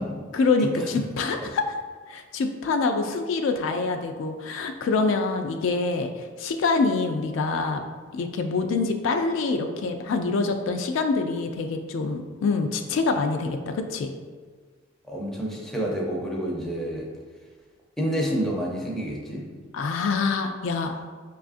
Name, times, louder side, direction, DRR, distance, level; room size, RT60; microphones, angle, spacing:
voice 1, 0.3-1.7 2.1-7.8 8.1-14.1 19.7-21.0, left 4 dB, 75° left, 6 dB, 0.3 m, -25 dB
voice 2, 15.1-17.1 18.0-19.5, equal, ahead, -3 dB, 0.5 m, -29 dB
5.3 x 2.4 x 2.5 m, 1.5 s
head